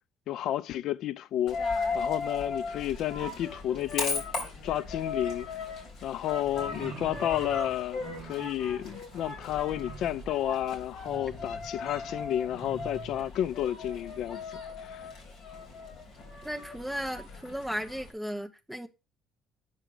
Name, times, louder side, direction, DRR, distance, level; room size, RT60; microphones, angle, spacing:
voice 1, 0.3-4.2 4.6-5.5 6.0-14.4 14.8-15.1, left 12 dB, 55° left, 0.4 m, -31 dB
Coin (dropping), 1.5-18.1, left 4 dB, 40° left, 4.0 m, -37 dB
sound 1, 6.4-13.2, right 3 dB, 45° right, 1.5 m, -46 dB
voice 2, 16.4-18.9, equal, 5° right, 0.9 m, -35 dB
9.0 x 6.0 x 4.9 m
cardioid pair, 165°, 0 cm